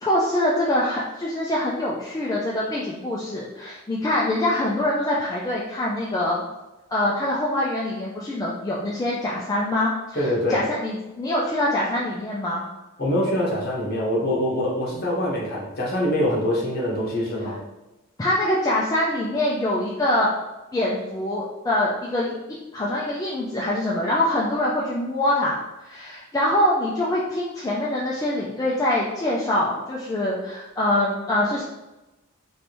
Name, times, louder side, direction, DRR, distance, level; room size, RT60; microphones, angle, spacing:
voice 1, 0.0-6.4 6.9-12.6 18.2-20.3 20.7-22.3 22.7-25.6 25.9-31.6, left 1 dB, 15° left, -5 dB, 0.3 m, -24 dB
voice 2, 10.1-10.6 13.0-17.6, left 1 dB, 45° left, -4 dB, 1.0 m, -24 dB
3.3 x 2.6 x 2.9 m, 1.0 s
head